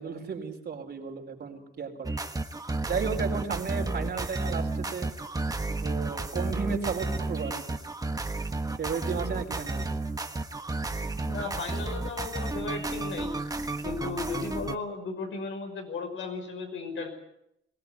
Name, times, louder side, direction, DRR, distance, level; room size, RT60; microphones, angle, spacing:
voice 1, 0.0-2.1 2.9-5.1 5.8-7.8 8.4-8.5 8.8-9.9, right 6 dB, 60° right, 2 dB, 4.7 m, -34 dB
sound 1, 2.0-14.8, right 2 dB, 20° right, 1.4 m, -32 dB
voice 2, 11.3-13.4 13.8-17.1, left 4 dB, 85° left, 4 dB, 6.0 m, -35 dB
22.5 x 18.0 x 9.7 m, 0.80 s
wide cardioid pair, 130°, 20 cm